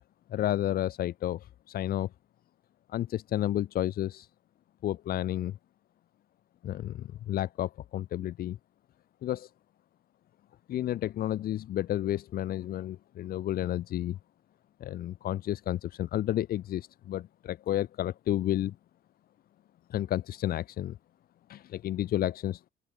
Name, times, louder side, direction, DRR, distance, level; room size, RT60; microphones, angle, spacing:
voice 1, 0.3-2.1 2.9-4.3 4.8-5.6 6.6-8.6 9.2-9.5 10.7-14.2 14.8-18.8 19.9-21.0 21.5-22.6, left 12 dB, 65° left, 1.7 m, -31 dB
open air
cardioid pair, 110°, 17 cm